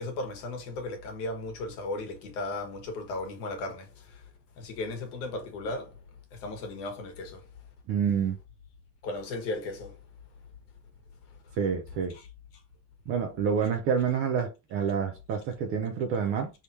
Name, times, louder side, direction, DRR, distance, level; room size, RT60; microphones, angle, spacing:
voice 1, 0.0-3.9 4.6-5.9 6.4-7.4 9.0-10.0 12.1-12.3, left 2 dB, 65° left, 1.5 m, -35 dB
voice 2, 7.9-8.4 11.6-12.1 13.1-16.5, right 7 dB, 30° right, 0.4 m, -28 dB
4.6 x 3.6 x 2.7 m
cardioid pair, 180°, 50 cm